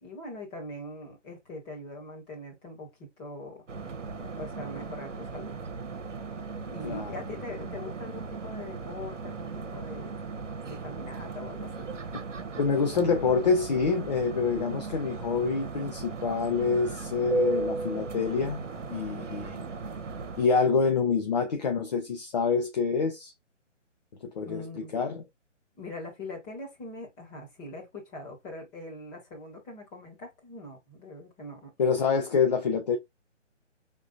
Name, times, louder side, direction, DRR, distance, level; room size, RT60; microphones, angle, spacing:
voice 1, 0.0-3.7 4.2-5.5 6.7-10.2 10.6-11.9 24.4-24.9 25.8-31.7, left 2 dB, 15° left, 1.8 m, -42 dB
sound 1, 3.7-20.5, right 4 dB, 80° right, 1.0 m, -36 dB
voice 2, 6.8-7.2 12.1-12.2 12.6-18.6 18.9-19.6 20.4-23.3 24.2-24.6 24.9-25.2 31.8-33.0, left 5 dB, 35° left, 0.8 m, -26 dB
4.9 x 3.7 x 2.5 m
figure-of-eight pair, 150°, 37 cm